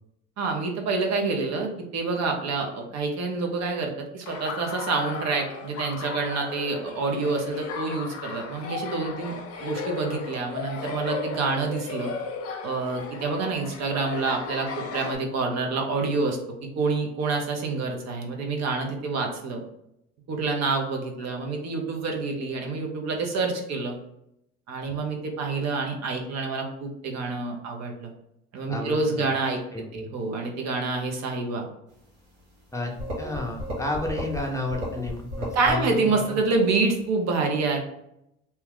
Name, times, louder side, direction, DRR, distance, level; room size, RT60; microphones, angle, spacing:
voice 1, 0.4-9.3 9.6-12.1 12.6-19.6 20.3-24.0 24.7-28.1 28.5-29.6 29.9-31.7 35.5-37.8, right 3 dB, 55° right, 2 dB, 0.8 m, -27 dB
Laughter, 4.3-15.2, left 5 dB, 45° left, 0.7 m, -36 dB
voice 2, 28.7-29.0 29.7-30.1 32.7-36.4, left 2 dB, 10° left, 0 dB, 0.6 m, -31 dB
sound 1, 32.7-32.8 33.0-34.4 34.7-35.8, equal, 85° right, 1.4 m, -33 dB
2.9 x 2.3 x 3.5 m, 0.80 s
supercardioid pair, 80°, 32 cm